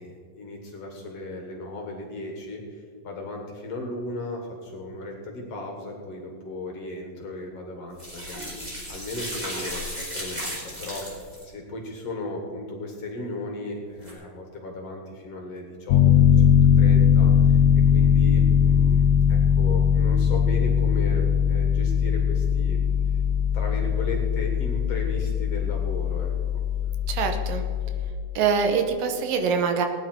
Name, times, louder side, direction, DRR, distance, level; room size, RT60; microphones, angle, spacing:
voice 1, 0.0-9.9 10.1-16.3 16.8-22.8 23.5-26.6, left 2 dB, 55° left, 2 dB, 2.2 m, -36 dB
sound 1, 8.0-11.4 14.0-14.1, equal, 10° right, 2.8 m, -35 dB
Piano, 15.9-28.1, left 8 dB, 75° left, 2.0 m, -20 dB
voice 2, 27.1-27.6 28.4-29.9, right 6 dB, 80° right, 6 dB, 2.7 m, -24 dB
18.0 x 9.9 x 4.5 m, 2.1 s
omnidirectional pair, 4.1 m